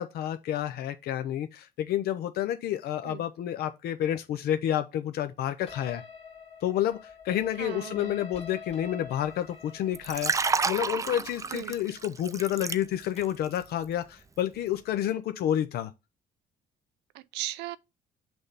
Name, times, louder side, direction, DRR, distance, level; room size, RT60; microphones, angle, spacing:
voice 1, 0.0-6.0 6.6-15.9, left 11 dB, 70° left, 0.7 m, -30 dB
sound 1, 5.7-13.5, left 5 dB, 35° left, 2.1 m, -47 dB
voice 2, 7.6-8.2 11.5-11.7 17.1-17.8, right 16 dB, 85° right, 0.5 m, -37 dB
Liquid, 9.9-13.3 13.6-13.8, right 5 dB, 20° right, 0.4 m, -30 dB
6.2 x 3.4 x 5.6 m
cardioid pair, 110°, 17 cm